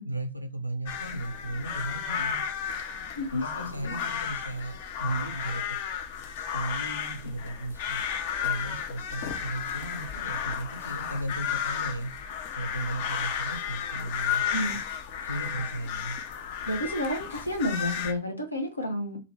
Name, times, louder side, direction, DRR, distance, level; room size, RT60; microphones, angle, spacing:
voice 1, 0.1-2.4 3.2-5.8 6.5-8.0 8.4-12.1 12.5-14.4 15.2-16.2, right 2 dB, 85° right, 0.6 m, -35 dB
sound 1, 0.9-18.1, left 8 dB, 50° left, 0.6 m, -33 dB
voice 2, 3.2-4.0 14.5-14.8 16.7-19.2, left 1 dB, 85° left, 0.9 m, -31 dB
2.7 x 2.5 x 3.2 m
figure-of-eight pair, 90°, 0 cm